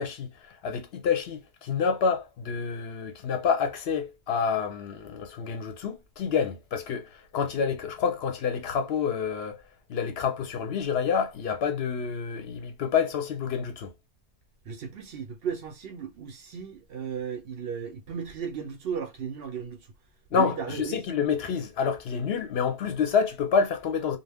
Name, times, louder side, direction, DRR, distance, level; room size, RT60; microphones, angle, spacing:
voice 1, 0.0-9.6 9.9-13.9 20.3-24.2, left 6 dB, 65° left, 0.8 m, -28 dB
voice 2, 14.7-19.8 20.3-21.0, right 7 dB, 65° right, 0.7 m, -35 dB
2.4 x 2.2 x 3.3 m
omnidirectional pair, 1.2 m